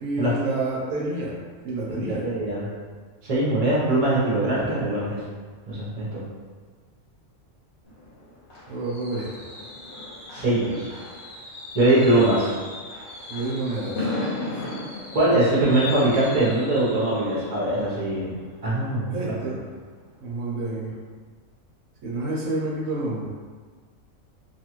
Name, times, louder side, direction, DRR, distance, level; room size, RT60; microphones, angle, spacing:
voice 1, 0.0-1.4 1.6-2.3 8.7-9.4 10.7-10.8 13.3-14.1 14.5-14.6 19.1-19.6 20.2-20.9 22.0-23.3, right 2 dB, 80° right, -4 dB, 1.1 m, -29 dB
voice 2, 2.0-2.6 3.3-5.2 5.7-6.2 10.3-10.9 11.7-12.5 15.1-18.4 18.6-19.1 19.4-19.5, right 1 dB, 35° right, -7 dB, 0.9 m, -22 dB
Fireworks, 7.8-19.5 19.9-20.2 20.5-20.6, left 2 dB, 60° left, 1.0 m, -36 dB
2.9 x 2.4 x 2.9 m, 1.5 s
omnidirectional pair, 1.4 m